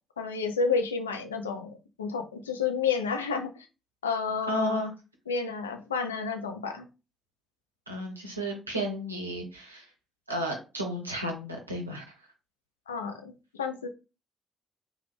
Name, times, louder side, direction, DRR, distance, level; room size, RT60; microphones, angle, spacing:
voice 1, 0.2-1.7 2.0-3.7 4.0-4.9 5.3-6.9 12.9-13.9, left 5 dB, 80° left, 6 dB, 0.3 m, -30 dB
voice 2, 4.5-4.9 7.9-9.9 10.3-12.0, equal, 85° right, 1 dB, 0.5 m, -32 dB
3.2 x 2.2 x 3.1 m, 0.30 s
figure-of-eight pair, 40°, 0 cm